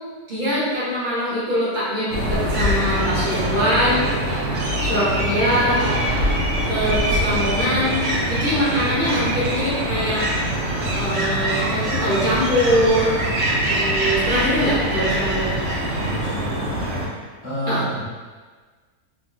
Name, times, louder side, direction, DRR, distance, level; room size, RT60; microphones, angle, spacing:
voice 1, 0.3-4.0 4.8-5.8 6.7-8.0 8.3-10.2 11.0-13.1 13.7-15.5 17.7-17.8, equal, 40° right, -10 dB, 0.7 m, -22 dB
sound 1, 2.1-17.1, right 1 dB, 65° right, 0.9 m, -23 dB
voice 2, 15.9-16.8 17.4-18.0, equal, 30° left, -14 dB, 1.1 m, -29 dB
3.5 x 2.1 x 2.4 m, 1.4 s
omnidirectional pair, 1.9 m